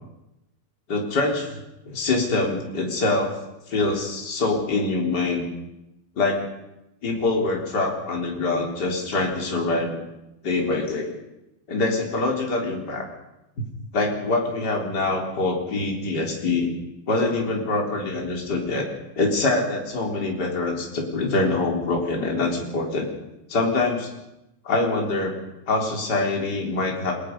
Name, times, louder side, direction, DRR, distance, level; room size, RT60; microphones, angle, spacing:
voice 1, 0.9-1.6 1.9-3.4 3.7-5.5 6.2-6.4 7.0-10.0 10.4-11.1 11.7-13.1 13.9-16.7 17.1-18.9 19.2-23.1 23.5-24.1 24.6-25.4 25.7-27.1, left 3 dB, 25° left, 0 dB, 3.8 m, -24 dB
30.0 x 18.5 x 5.4 m, 0.91 s
omnidirectional pair, 4.8 m